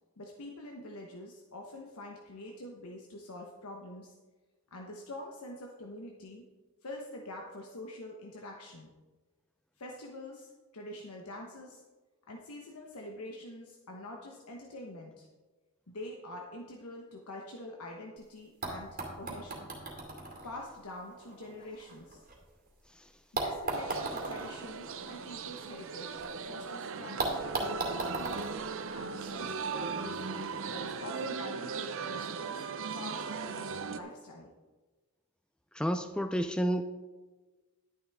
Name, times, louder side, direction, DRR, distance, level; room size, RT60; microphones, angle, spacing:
voice 1, 0.2-4.1 4.7-6.4 6.8-8.9 9.8-11.8 12.3-15.3 15.9-19.7 20.4-22.2 23.3-27.4 27.9-28.5 28.9-30.2 30.7-34.5, left 1 dB, 80° left, 0 dB, 1.0 m, -45 dB
sound 1, 18.2-18.3 18.6-22.7 23.3-26.3 26.6-26.7 27.2-29.6 30.6-30.7, right 2 dB, 40° right, 2.2 m, -38 dB
sound 2, 23.7-34.0, right 5 dB, 60° right, 0.6 m, -38 dB
voice 2, 35.7-36.8, equal, 5° left, 8 dB, 0.3 m, -30 dB
11.0 x 10.0 x 3.5 m, 1.3 s
head